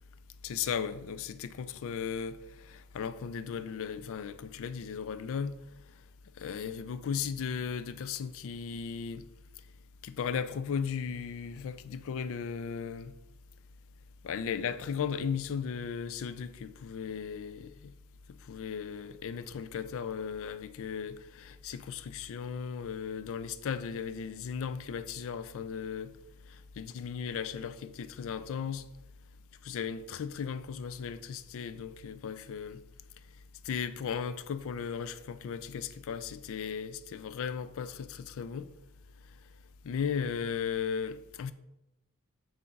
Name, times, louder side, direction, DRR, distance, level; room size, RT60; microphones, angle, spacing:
voice 1, 0.4-5.6 6.4-9.3 10.0-13.1 14.2-17.9 18.3-26.1 26.5-28.8 29.6-32.8 33.6-38.7 39.8-41.5, left 6 dB, 60° left, 0.4 m, -36 dB
7.6 x 2.5 x 5.7 m
head